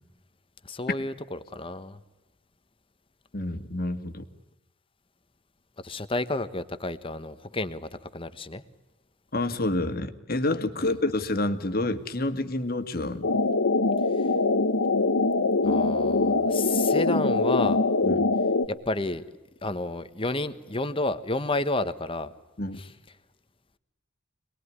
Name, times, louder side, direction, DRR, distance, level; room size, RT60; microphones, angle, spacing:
voice 1, 0.6-2.0 5.8-8.6 10.8-10.9 14.2-14.3 15.6-17.8 18.7-19.2 19.6-22.3 22.8-22.9, left 2 dB, 25° left, 12 dB, 1.2 m, -31 dB
voice 2, 3.3-4.2 9.3-13.3 18.0-18.3 22.6-22.8, left 2 dB, 45° left, 8 dB, 1.9 m, -28 dB
sound 1, 13.2-18.7, left 3 dB, 75° left, 1.2 m, -23 dB
27.0 x 20.5 x 9.7 m, 1.1 s
head